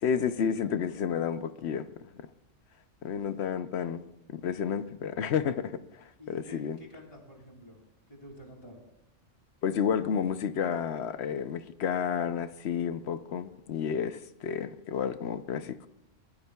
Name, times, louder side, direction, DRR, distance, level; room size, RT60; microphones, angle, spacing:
voice 1, 0.0-1.9 3.0-6.8 9.6-15.9, left 7 dB, 65° left, 0.9 m, -31 dB
voice 2, 6.2-7.8 8.1-8.8, equal, 30° left, 2.7 m, -49 dB
21.0 x 12.5 x 2.3 m
omnidirectional pair, 1.3 m